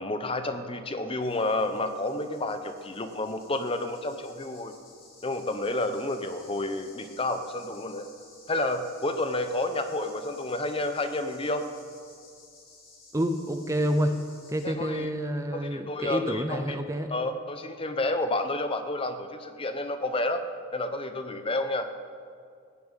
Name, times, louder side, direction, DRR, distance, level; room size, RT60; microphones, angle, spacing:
voice 1, 0.0-4.7 5.2-8.1 8.5-11.7 14.6-15.1 15.5-16.8 17.1-20.4 20.7-21.9, left 2 dB, 25° left, 8 dB, 0.8 m, -30 dB
sound 1, 1.2-14.7, left 3 dB, 45° left, 3.9 m, -54 dB
voice 2, 13.1-14.2 14.5-17.1, equal, 15° right, 7 dB, 0.6 m, -28 dB
16.0 x 7.2 x 9.0 m, 2.2 s
head